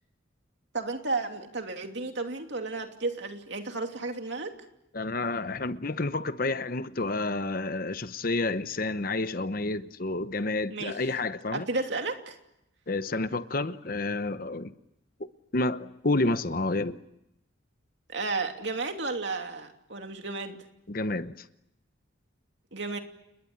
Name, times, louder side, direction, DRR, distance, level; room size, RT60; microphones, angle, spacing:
voice 1, 0.7-4.5 10.7-10.9 11.5-12.4 18.1-20.6 22.7-23.0, right 3 dB, 60° right, 2.9 m, -33 dB
voice 2, 4.9-11.7 12.9-14.7 15.5-17.0 20.9-21.3, left 2 dB, 45° left, 0.9 m, -29 dB
30.0 x 20.5 x 8.7 m
head